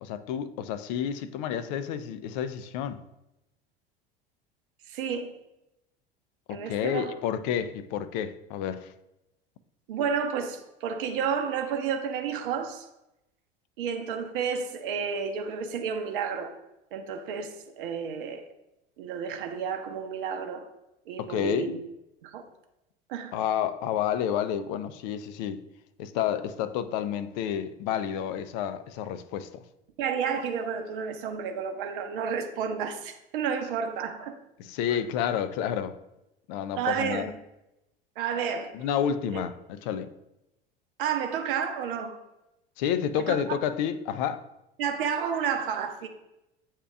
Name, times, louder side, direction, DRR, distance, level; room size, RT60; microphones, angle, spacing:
voice 1, 0.0-3.0 6.5-8.9 21.2-21.8 23.3-25.6 26.0-29.5 34.6-36.0 36.5-37.3 38.7-40.1 42.8-44.4, left 9 dB, 50° left, 0.4 m, -30 dB
voice 2, 4.9-5.3 6.5-7.1 9.9-12.9 13.8-16.5 16.9-18.5 19.0-20.7 21.1-21.7 22.2-22.4 23.1-23.3 30.0-34.3 36.8-37.3 38.2-38.7 39.3-39.4 41.0-42.2 43.2-43.4 44.8-46.1, right 7 dB, 65° right, 0.6 m, -31 dB
8.1 x 2.8 x 2.3 m
figure-of-eight pair, 75°, 29 cm